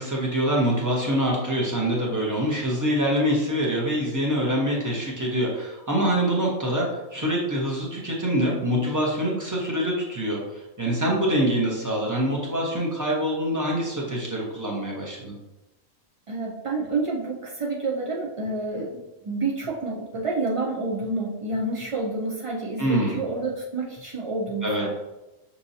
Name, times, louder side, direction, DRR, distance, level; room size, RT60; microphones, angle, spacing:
voice 1, 0.0-15.3 22.8-23.2 24.6-24.9, equal, 15° right, -3 dB, 1.0 m, -25 dB
voice 2, 16.3-24.9, right 3 dB, 60° right, -2 dB, 0.3 m, -29 dB
6.2 x 3.0 x 2.7 m, 0.99 s
omnidirectional pair, 1.3 m